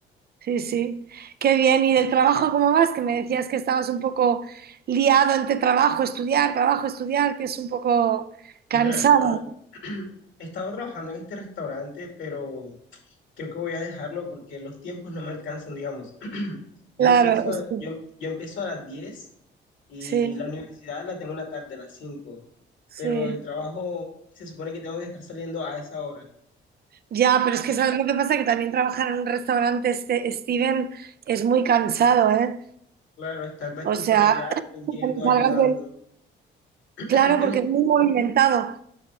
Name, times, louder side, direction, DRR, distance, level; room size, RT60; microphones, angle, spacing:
voice 1, 0.4-8.3 8.7-9.4 17.0-17.8 20.1-20.4 23.0-23.4 27.1-32.6 33.8-34.5 34.9-35.7 37.1-38.8, right 8 dB, 50° right, 0.5 m, -21 dB
voice 2, 8.7-9.4 9.7-10.1 10.4-12.7 13.1-16.6 17.0-19.3 19.9-22.4 23.0-24.1 24.4-26.3 33.2-35.9 37.0-37.6, left 3 dB, 75° left, 2.3 m, -34 dB
7.1 x 5.6 x 3.6 m
cardioid pair, 90°, 20 cm